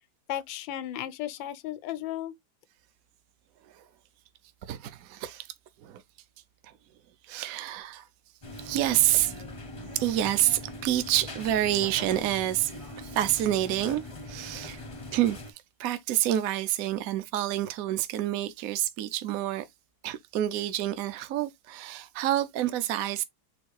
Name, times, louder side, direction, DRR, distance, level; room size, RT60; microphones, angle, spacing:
voice 1, 0.3-2.3, left 12 dB, 85° left, 1.3 m, -34 dB
voice 2, 4.7-5.5 5.8-6.0 6.6-6.7 7.3-8.1 8.6-9.4 9.9-12.7 13.0-14.8 15.1-15.4 15.8-19.6 20.0-23.2, right 13 dB, 70° right, 0.8 m, -28 dB
sound 1, 8.4-15.5, left 2 dB, 35° left, 0.5 m, -41 dB
4.4 x 2.3 x 4.6 m
omnidirectional pair, 2.1 m